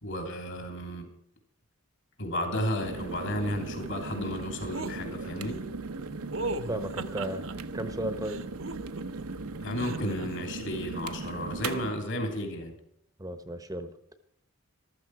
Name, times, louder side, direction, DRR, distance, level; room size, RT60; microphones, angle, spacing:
voice 1, 0.0-1.1 2.2-5.6 9.6-12.7, equal, 55° left, 4 dB, 3.2 m, -33 dB
sound 1, 2.8-11.9, right 3 dB, 80° right, 0.9 m, -38 dB
sound 2, 4.7-5.0 6.3-7.5 8.2-9.2 9.8-10.3, right 2 dB, 60° right, 1.1 m, -36 dB
voice 2, 6.7-7.5 7.7-8.4 13.2-13.9, right 1 dB, 15° right, 9 dB, 0.9 m, -34 dB
14.5 x 13.0 x 4.7 m, 0.73 s
head